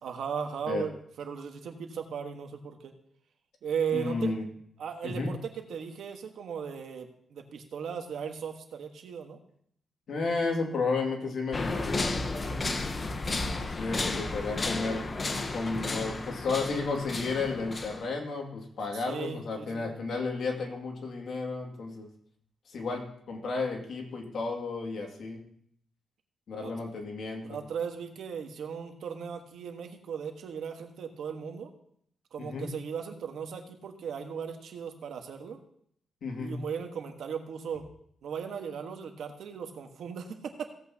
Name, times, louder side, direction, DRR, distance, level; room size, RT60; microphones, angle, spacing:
voice 1, 0.0-2.9 3.6-4.3 4.8-9.4 12.4-12.8 18.9-19.9 26.6-26.7 27.4-31.7 32.3-35.6 36.4-37.8 38.2-40.6, right 7 dB, 80° right, 4 dB, 1.4 m, -37 dB
voice 2, 3.9-4.4 5.0-5.3 10.1-12.1 13.6-15.2 15.5-22.1 22.7-25.5 26.5-27.6 32.4-32.7 36.2-36.6, left 4 dB, 70° left, 1 dB, 2.4 m, -33 dB
sound 1, 11.5-18.1, left 3 dB, 35° left, 1.0 m, -33 dB
16.5 x 8.4 x 2.9 m, 0.66 s
cardioid pair, 95°, 0 cm